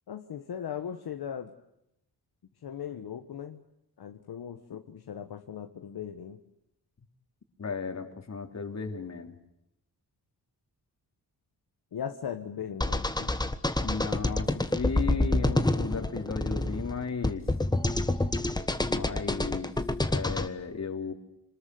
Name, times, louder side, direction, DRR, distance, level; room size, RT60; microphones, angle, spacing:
voice 1, 0.1-1.5 2.6-3.6 4.0-6.4 11.9-13.3, left 8 dB, 65° left, 6 dB, 1.5 m, -38 dB
voice 2, 7.6-9.3 13.8-17.4 18.9-19.7 20.0-21.1, left 5 dB, 40° left, 6 dB, 3.4 m, -35 dB
sound 1, 12.8-20.5, left 2 dB, 10° left, 1.3 m, -28 dB
27.0 x 20.5 x 9.4 m, 0.83 s
wide cardioid pair, 115°, 40 cm